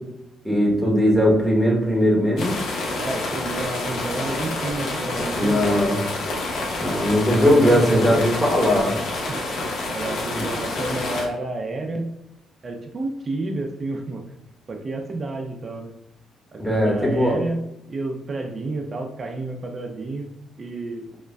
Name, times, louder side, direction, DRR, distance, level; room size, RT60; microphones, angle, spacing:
voice 1, 0.4-2.5 5.3-6.0 6.8-8.9 16.6-17.4, equal, 5° left, -3 dB, 1.0 m, -19 dB
sound 1, 2.4-11.2, left 2 dB, 70° left, 0.8 m, -28 dB
voice 2, 3.0-5.8 7.2-8.2 9.3-9.4 9.9-12.1 12.6-14.2 14.7-15.9 16.5-21.1, right 2 dB, 40° right, 4 dB, 0.5 m, -30 dB
4.9 x 2.1 x 2.2 m, 0.84 s
cardioid pair, 90°, 0 cm